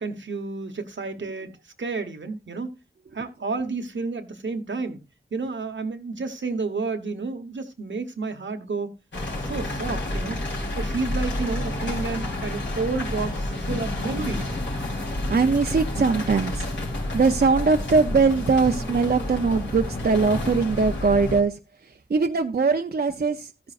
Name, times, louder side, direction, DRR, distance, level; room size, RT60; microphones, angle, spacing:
voice 1, 0.0-1.5 1.8-2.7 3.1-5.0 5.3-8.9 9.4-10.4 10.7-14.6, right 4 dB, 80° right, 1.2 m, -30 dB
sound 1, 9.1-21.4, left 1 dB, 75° left, 3.7 m, -29 dB
voice 2, 15.3-16.7 17.1-21.6 22.1-23.7, right 4 dB, 55° right, 0.7 m, -21 dB
13.5 x 9.5 x 2.5 m
wide cardioid pair, 75°, 19 cm